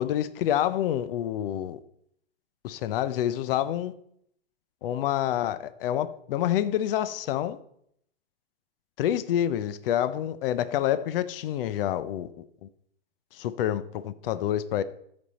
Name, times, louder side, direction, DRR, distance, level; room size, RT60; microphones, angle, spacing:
voice 1, 0.0-1.8 2.6-3.9 4.8-7.6 9.0-12.7 13.3-14.8, left 11 dB, 65° left, 0.7 m, -27 dB
13.5 x 5.3 x 4.2 m
hypercardioid pair, 115°, 31 cm